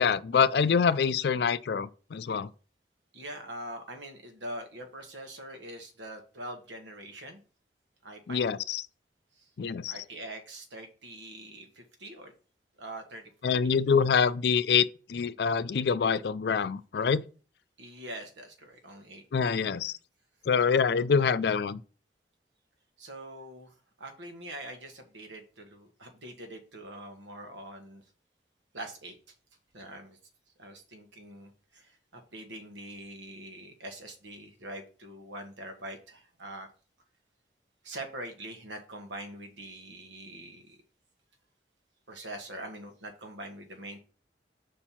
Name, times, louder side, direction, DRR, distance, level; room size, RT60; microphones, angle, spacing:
voice 1, 0.0-2.5 8.3-8.8 9.6-9.9 13.4-17.2 19.3-19.9 20.5-21.8, left 6 dB, 60° left, 0.4 m, -25 dB
voice 2, 3.1-7.4 8.0-8.4 9.4-9.5 9.9-12.3 12.8-13.5 17.8-19.2 23.0-28.0 28.7-29.2 29.7-30.2 30.6-36.7 37.8-40.8 42.1-44.0, right 1 dB, 90° right, 1.4 m, -43 dB
5.3 x 4.4 x 5.7 m
head